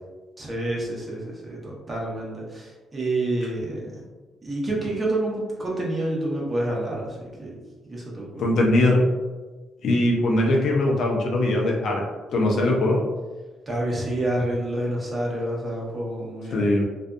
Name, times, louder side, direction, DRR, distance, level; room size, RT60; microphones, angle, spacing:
voice 1, 0.4-4.0 4.4-7.5 7.8-8.4 13.7-16.8, right 1 dB, 25° right, -4 dB, 0.9 m, -28 dB
voice 2, 8.4-9.0 9.8-12.1 12.3-13.0 16.5-16.9, left 1 dB, 65° left, -1 dB, 0.5 m, -21 dB
2.6 x 2.4 x 2.3 m, 1.2 s
cardioid pair, 80°, 0 cm